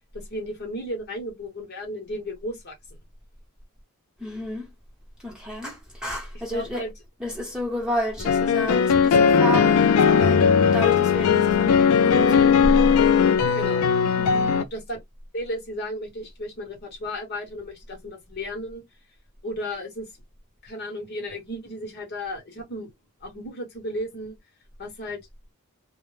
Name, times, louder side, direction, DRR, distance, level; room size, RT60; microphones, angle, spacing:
voice 1, 0.1-2.8 6.5-6.9 13.5-13.8 14.6-15.0 15.3-18.8 19.4-20.1 20.6-22.9 23.2-24.4 24.8-25.2, equal, 50° left, 0.9 m, -34 dB
voice 2, 4.2-4.7 5.2-6.9 7.2-12.6 14.2-14.6, equal, 5° right, 0.8 m, -31 dB
sound 1, 8.2-14.6, left 6 dB, 80° left, 0.4 m, -18 dB
2.0 x 2.0 x 3.0 m
head